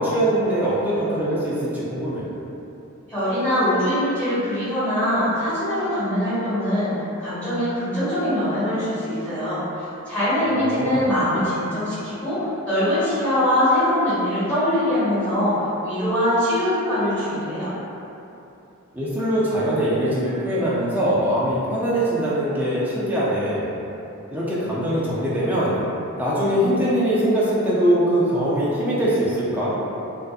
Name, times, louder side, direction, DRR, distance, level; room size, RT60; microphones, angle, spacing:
voice 1, 0.0-2.2 10.5-11.0 18.9-23.7 24.3-25.8 26.2-29.7, right 1 dB, 10° right, -9 dB, 0.4 m, -22 dB
voice 2, 3.1-17.7, left 1 dB, 5° left, -15 dB, 1.1 m, -22 dB
2.5 x 2.4 x 2.3 m, 2.9 s
head